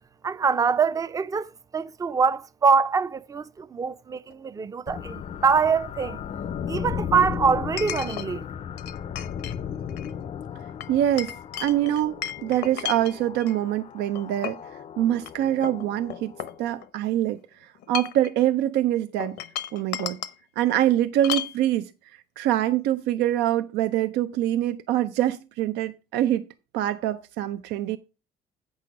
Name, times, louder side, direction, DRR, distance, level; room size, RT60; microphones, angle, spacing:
voice 1, 0.2-6.2 6.7-8.4, right 5 dB, 20° right, 0.4 m, -24 dB
Chink clink, 4.3-4.4 7.8-8.3 8.8-9.6 9.9-10.1 10.8-13.6 14.2-14.7 15.2-15.3 15.6-17.1 17.8-18.3 19.2-20.4 21.2-21.6, left 10 dB, 80° left, 0.8 m, -34 dB
sound 1, 4.9-16.8, left 8 dB, 40° left, 0.5 m, -36 dB
voice 2, 10.9-11.4 11.6-16.3 16.6-19.4 19.7-20.2 20.6-21.9 22.4-26.5 26.7-28.0, right 12 dB, 90° right, 0.5 m, -24 dB
8.5 x 6.2 x 5.0 m
cardioid pair, 110°, 17 cm